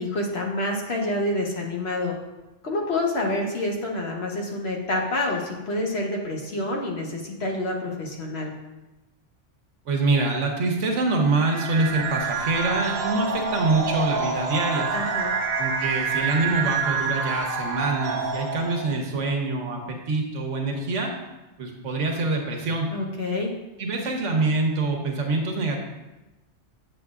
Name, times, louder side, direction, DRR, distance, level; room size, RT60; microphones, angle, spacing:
voice 1, 0.0-2.1 2.6-8.5 14.9-15.3 22.9-23.5, left 1 dB, 60° left, 0 dB, 1.3 m, -27 dB
voice 2, 9.9-14.9 15.6-21.1 21.6-22.9 23.8-25.8, right 3 dB, 80° right, 1 dB, 1.3 m, -25 dB
sound 1, 11.3-18.9, right 5 dB, 60° right, 1.0 m, -27 dB
7.9 x 6.9 x 2.4 m, 1.0 s
omnidirectional pair, 1.2 m